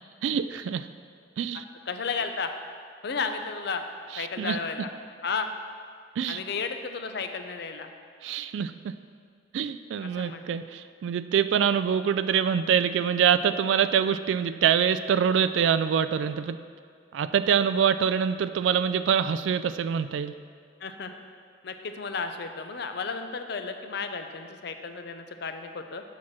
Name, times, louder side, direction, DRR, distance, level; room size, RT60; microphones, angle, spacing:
voice 1, 0.2-0.9 1.4-1.6 4.1-4.6 6.2-6.4 8.2-9.0 9.5-16.6 17.1-20.3, right 8 dB, 90° right, 12 dB, 0.3 m, -25 dB
voice 2, 1.9-2.5 3.0-3.8 4.2-4.9 5.2-5.5 6.3-7.9 10.0-10.6 20.8-21.1 21.6-26.0, left 5 dB, 65° left, 7 dB, 0.6 m, -33 dB
7.4 x 5.8 x 6.1 m, 2.1 s
head